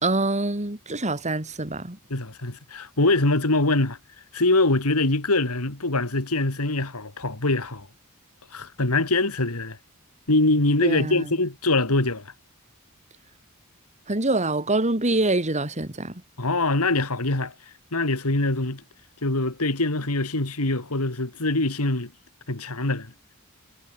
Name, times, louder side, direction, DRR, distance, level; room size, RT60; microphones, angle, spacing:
voice 1, 0.0-2.0 10.8-11.3 14.1-16.2, right 2 dB, 30° right, 3.1 m, -25 dB
voice 2, 2.1-4.0 4.3-7.9 8.5-9.8 10.3-12.2 16.4-17.5 17.9-18.8 19.2-22.1 22.5-23.1, left 2 dB, 75° left, 2.7 m, -23 dB
head